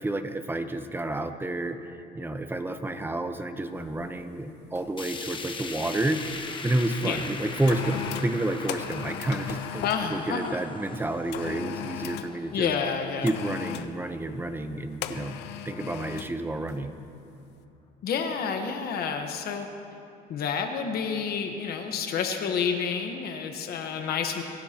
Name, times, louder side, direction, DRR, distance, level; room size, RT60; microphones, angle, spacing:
voice 1, 0.0-9.8 10.1-12.7 13.2-15.4 15.6-17.0, right 1 dB, 10° right, 8 dB, 0.9 m, -30 dB
sound 1, 3.9-4.1 4.8-5.0 5.3-6.5 7.2-10.1 11.3-12.4 13.3-14.0 15.0-16.4 16.7-16.9, left 11 dB, 85° left, 0.7 m, -37 dB
sound 2, 5.0-15.1 15.5-15.6 16.0-16.1 17.0-17.1, left 4 dB, 30° left, 1.2 m, -41 dB
voice 2, 9.8-10.6 12.5-13.3 18.0-19.7 20.3-24.4, left 6 dB, 65° left, 4 dB, 1.3 m, -29 dB
24.0 x 15.5 x 3.0 m, 2.6 s
cardioid pair, 110°, 17 cm